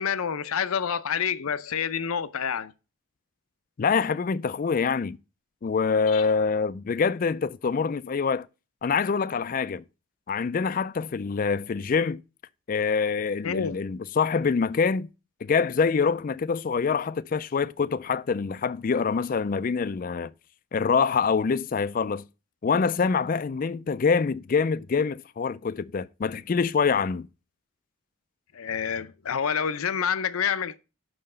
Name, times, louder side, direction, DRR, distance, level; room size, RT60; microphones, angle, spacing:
voice 1, 0.0-2.7 6.1-6.2 13.4-13.8 28.5-30.8, left 7 dB, 80° left, 0.6 m, -28 dB
voice 2, 3.8-5.2 5.6-8.5 8.8-9.8 10.3-12.2 12.7-15.1 15.4-20.3 20.7-22.2 22.6-27.3, left 5 dB, 40° left, 0.3 m, -25 dB
5.8 x 5.6 x 6.6 m
head